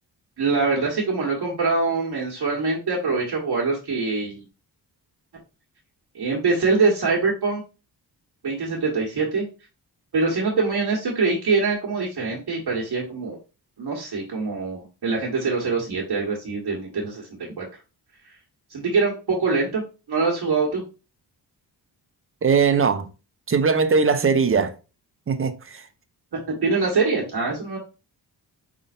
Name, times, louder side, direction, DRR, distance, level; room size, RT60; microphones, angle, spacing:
voice 1, 0.4-4.4 6.1-7.6 8.4-9.5 10.1-13.4 13.8-17.3 17.6-17.7 18.7-19.8 20.1-20.8 26.5-27.8, right 4 dB, 70° right, 1.4 m, -24 dB
voice 2, 22.4-23.1 23.5-24.7 25.3-25.8, right 5 dB, 35° right, 0.6 m, -20 dB
5.2 x 3.7 x 2.6 m
cardioid pair, 75°, 41 cm